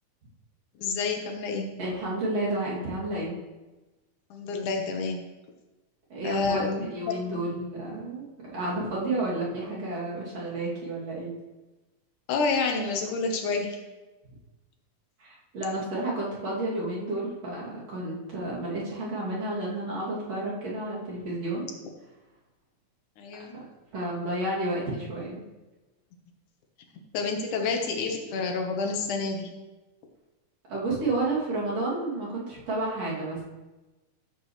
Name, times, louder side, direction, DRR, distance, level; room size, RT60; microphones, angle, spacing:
voice 1, 0.8-1.7 4.3-5.3 6.2-7.4 12.3-13.8 23.2-23.5 27.1-29.5, left 4 dB, 75° left, 3 dB, 2.6 m, -29 dB
voice 2, 1.8-3.4 6.1-8.3 8.5-11.3 15.2-21.7 23.5-23.6 23.9-25.4 30.7-33.4, right 2 dB, 55° right, -6 dB, 3.8 m, -31 dB
14.5 x 7.8 x 3.3 m, 1.1 s
omnidirectional pair, 3.6 m